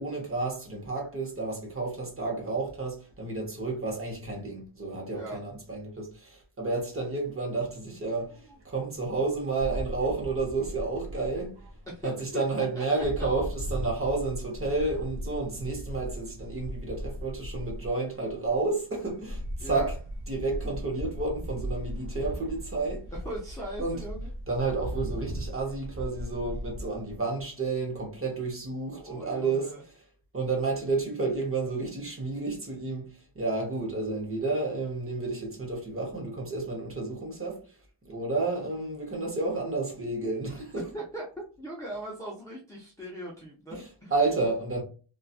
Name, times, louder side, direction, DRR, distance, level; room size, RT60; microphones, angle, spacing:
voice 1, 0.0-8.4 8.6-11.6 12.0-19.9 20.3-23.1 23.8-24.0 24.5-29.9 30.3-33.1 33.3-37.6 38.0-40.9 43.7-44.8, right 3 dB, 25° right, 0.9 m, -31 dB
voice 2, 5.1-5.4 11.9-12.4 12.7-13.0 19.6-19.9 23.1-24.3 28.9-29.8 40.8-41.3 41.6-44.1, right 1 dB, 5° left, 0.4 m, -40 dB
sound 1, 8.2-27.2, equal, 55° right, 0.5 m, -38 dB
2.6 x 2.3 x 2.3 m
wide cardioid pair, 175°, 48 cm